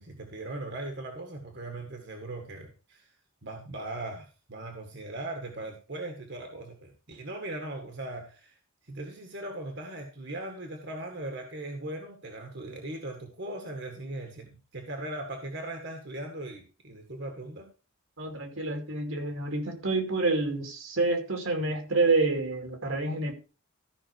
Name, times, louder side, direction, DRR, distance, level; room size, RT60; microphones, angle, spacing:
voice 1, 0.0-3.1 3.4-8.5 8.8-17.7, right 1 dB, 60° right, 1.9 m, -39 dB
voice 2, 18.2-23.3, right 3 dB, 75° right, 2.6 m, -28 dB
14.0 x 5.8 x 4.7 m
head